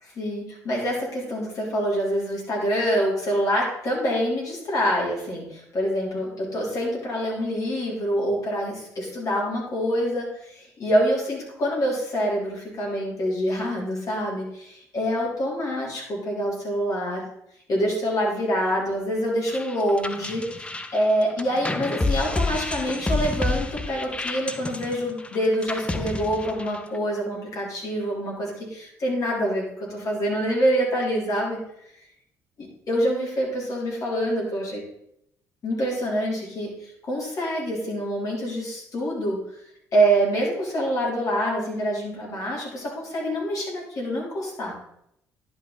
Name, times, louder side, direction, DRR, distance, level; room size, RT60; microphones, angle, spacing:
voice 1, 0.1-17.2 17.7-31.6 32.9-34.8 35.6-39.4 39.9-44.7, equal, 45° left, -3 dB, 3.4 m, -26 dB
sound 1, 19.5-27.0, left 2 dB, 15° left, 0.7 m, -29 dB
10.5 x 5.3 x 3.9 m, 0.74 s
figure-of-eight pair, 50°, 8 cm